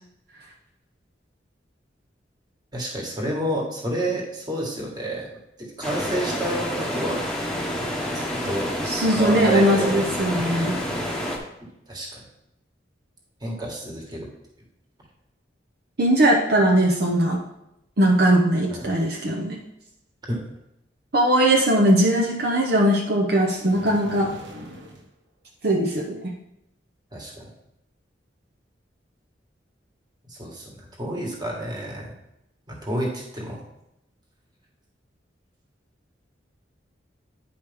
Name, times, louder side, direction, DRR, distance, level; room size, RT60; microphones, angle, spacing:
voice 1, 2.7-5.3 5.6-7.2 8.1-8.7 9.1-10.0 10.6-10.8 11.9-12.2 13.4-14.3 18.7-18.9 20.3-20.4 27.1-27.5 30.2-32.1 32.7-33.6, right 1 dB, 25° right, -2 dB, 1.8 m, -29 dB
sound 1, 5.8-11.4, equal, 5° left, 1.1 m, -28 dB
voice 2, 8.8-10.8 16.0-17.4 18.0-19.6 21.1-24.3 25.6-26.3, right 1 dB, 60° right, -1 dB, 0.9 m, -20 dB
sound 2, 23.6-25.1, equal, 75° right, 1.4 m, -41 dB
9.6 x 5.1 x 3.5 m, 0.84 s
head